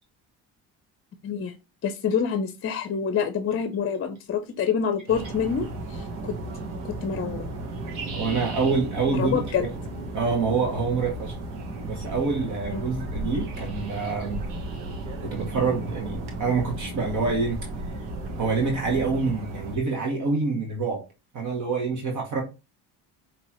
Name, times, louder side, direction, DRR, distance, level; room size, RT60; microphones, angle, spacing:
voice 1, 1.2-1.5 1.8-6.3 6.8-7.5 9.1-9.6 12.7-12.8, left 7 dB, 35° left, 9 dB, 0.6 m, -27 dB
sound 1, 5.1-19.8, right 2 dB, 90° right, 1.3 m, -34 dB
voice 2, 8.1-9.7 10.1-11.3 11.8-14.4 15.2-17.6 18.4-21.0 21.3-22.4, right 4 dB, 50° right, 1 dB, 1.5 m, -26 dB
5.3 x 3.0 x 3.0 m, 0.27 s
supercardioid pair, 95°, 39 cm